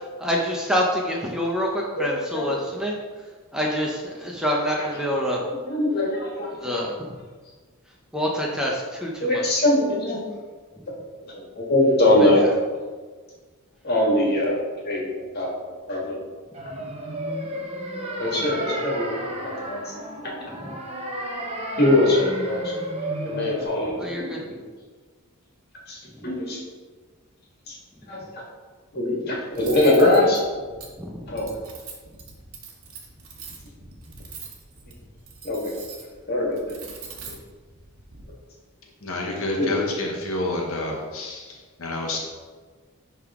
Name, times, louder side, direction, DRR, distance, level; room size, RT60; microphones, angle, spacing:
voice 1, 0.2-3.0 3.5-5.4 6.6-6.9 8.1-9.4 12.2-12.3 24.0-24.4 31.0-31.3, equal, 5° right, -2 dB, 0.7 m, -26 dB
voice 2, 2.0-2.6 4.8-4.9 5.5-6.8 9.2-10.2 11.2-12.4 13.8-15.5 15.9-16.2 17.4-17.6 18.2-20.3 21.8-22.7 23.2-24.6 25.9-26.6 27.7-27.8 28.1-28.4 28.9-30.4 31.3-31.5 35.4-35.7 36.3-36.8 39.2-39.8, left 1 dB, 45° left, -3 dB, 1.8 m, -23 dB
sound 1, 16.5-23.7, right 1 dB, 30° right, 0.9 m, -32 dB
Cutlery silverware, 29.5-38.2, right 5 dB, 70° right, 1.2 m, -43 dB
voice 3, 39.0-42.2, left 2 dB, 65° left, 0 dB, 1.0 m, -29 dB
10.5 x 3.5 x 3.7 m, 1.4 s
head